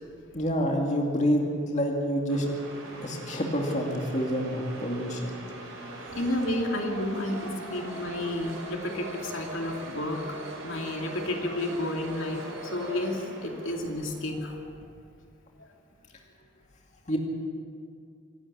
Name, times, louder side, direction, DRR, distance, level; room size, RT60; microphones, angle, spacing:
voice 1, 0.3-2.5 3.0-5.3 17.1-17.2, equal, 35° left, 0 dB, 2.3 m, -27 dB
sound 1, 2.3-14.6, right 2 dB, 80° right, 7.2 m, -41 dB
voice 2, 6.2-10.2 10.6-14.5 15.6-15.7, left 1 dB, 75° left, 1 dB, 2.6 m, -31 dB
26.0 x 11.5 x 8.7 m, 2.2 s
head